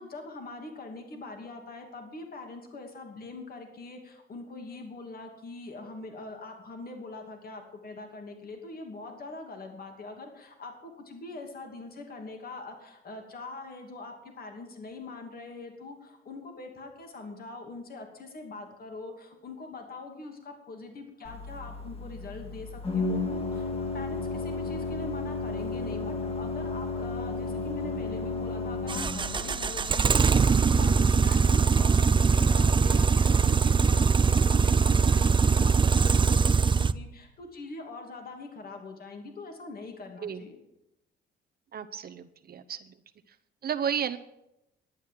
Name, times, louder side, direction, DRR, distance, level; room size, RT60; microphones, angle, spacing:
voice 1, 0.0-40.6, left 3 dB, 50° left, 3 dB, 2.7 m, -43 dB
Organ, 21.2-31.4, left 3 dB, 30° left, 2.1 m, -34 dB
sound 1, 28.9-36.9, right 5 dB, 25° right, 0.5 m, -22 dB
voice 2, 41.7-42.9 43.6-44.2, right 8 dB, 50° right, 7 dB, 0.8 m, -32 dB
11.5 x 9.2 x 7.6 m, 0.88 s
cardioid pair, 90°, 20 cm